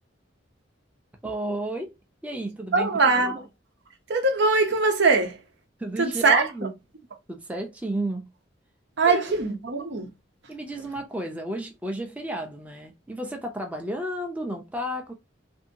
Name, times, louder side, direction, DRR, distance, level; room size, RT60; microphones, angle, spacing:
voice 1, 1.2-2.0 2.2-3.4 5.8-6.7 7.3-8.3 9.0-9.2 10.5-15.1, right 1 dB, 10° right, 0.5 m, -32 dB
voice 2, 2.7-3.4 4.1-5.4 6.0-6.5 9.0-10.1, right 3 dB, 65° right, 0.7 m, -21 dB
2.7 x 2.6 x 2.7 m
head